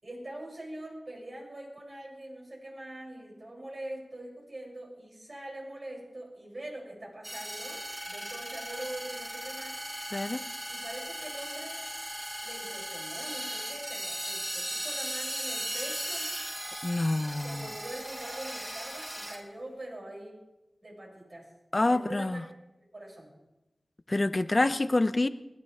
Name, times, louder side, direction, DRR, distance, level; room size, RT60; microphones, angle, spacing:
voice 1, 0.0-9.8 10.7-11.9 12.4-16.3 17.4-20.4 20.8-21.5 21.9-22.5 22.9-23.3, right 1 dB, 50° right, -3 dB, 7.3 m, -43 dB
sound 1, 7.2-19.4, right 1 dB, 25° right, 4.4 m, -37 dB
voice 2, 10.1-10.4 16.8-17.6 21.7-22.4 24.1-25.3, left 2 dB, 40° left, 12 dB, 0.7 m, -27 dB
21.0 x 16.0 x 3.6 m, 1.0 s
wide cardioid pair, 55°, 0 cm